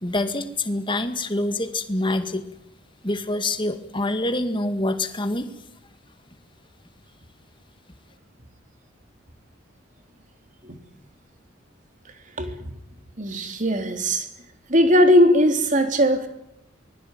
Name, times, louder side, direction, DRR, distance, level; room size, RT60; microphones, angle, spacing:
voice 1, 0.0-2.4 3.0-5.5, left 2 dB, 25° left, 8 dB, 2.1 m, -26 dB
voice 2, 13.2-14.3 14.7-16.3, equal, 40° right, 6 dB, 3.3 m, -19 dB
24.0 x 20.5 x 9.2 m, 0.82 s
head